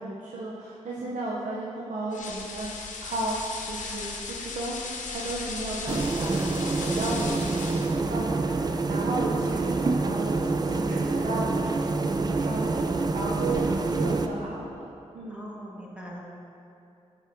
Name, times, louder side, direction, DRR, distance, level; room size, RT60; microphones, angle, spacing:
voice 1, 0.0-3.4 3.7-4.8 5.1-6.4 6.8-14.9 15.1-15.4, right 2 dB, 85° right, -5 dB, 0.7 m, -34 dB
sound 1, 2.1-8.0, left 4 dB, 90° left, 0.6 m, -36 dB
sound 2, 5.9-14.3, right 3 dB, 30° right, 0.4 m, -27 dB
voice 2, 15.3-16.2, equal, 10° right, -4 dB, 1.3 m, -41 dB
7.3 x 5.4 x 3.5 m, 2.7 s
cardioid pair, 60°, 13 cm